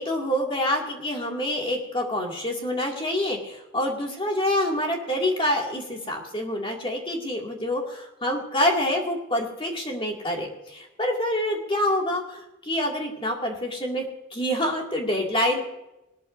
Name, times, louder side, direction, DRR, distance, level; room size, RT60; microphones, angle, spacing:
voice 1, 0.0-14.1 14.3-15.7, left 1 dB, 25° left, 0 dB, 2.2 m, -26 dB
20.0 x 13.0 x 2.6 m, 0.96 s
head